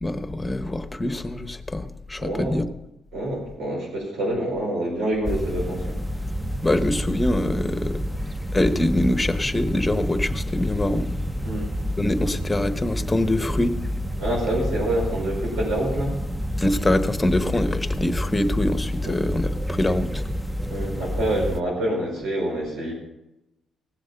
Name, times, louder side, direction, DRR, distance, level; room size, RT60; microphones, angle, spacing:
voice 1, 0.0-2.7 6.6-8.0 8.5-11.1 12.0-13.8 16.6-20.2, left 1 dB, 15° left, 10 dB, 1.1 m, -24 dB
voice 2, 2.2-2.6 3.1-6.0 11.4-11.7 12.2-12.3 14.2-16.1 19.0-19.2 20.7-22.9, right 1 dB, 90° right, -3 dB, 4.9 m, -26 dB
sound 1, 5.2-21.6, equal, 5° right, 0.6 m, -29 dB
17.0 x 7.6 x 5.7 m, 0.89 s
cardioid pair, 90°, 0 cm